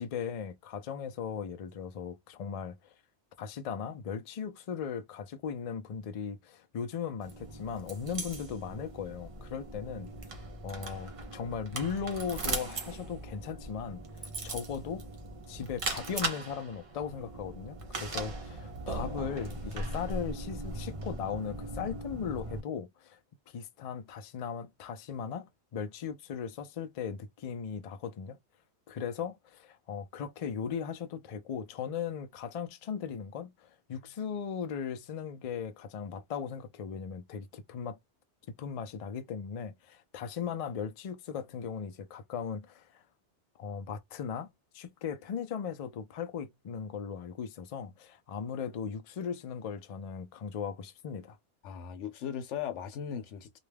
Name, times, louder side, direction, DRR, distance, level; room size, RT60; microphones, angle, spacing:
voice 1, 0.0-2.9 3.4-10.3 10.6-14.0 14.4-15.0 15.5-23.2 23.5-28.4 28.9-38.0 38.5-43.0 43.6-44.5 44.7-51.4, left 7 dB, 65° left, 0.3 m, -38 dB
sound 1, 7.2-22.6, right 2 dB, 40° right, 0.5 m, -39 dB
voice 2, 51.6-53.6, left 8 dB, 85° left, 0.9 m, -38 dB
2.4 x 2.2 x 3.2 m
omnidirectional pair, 1.2 m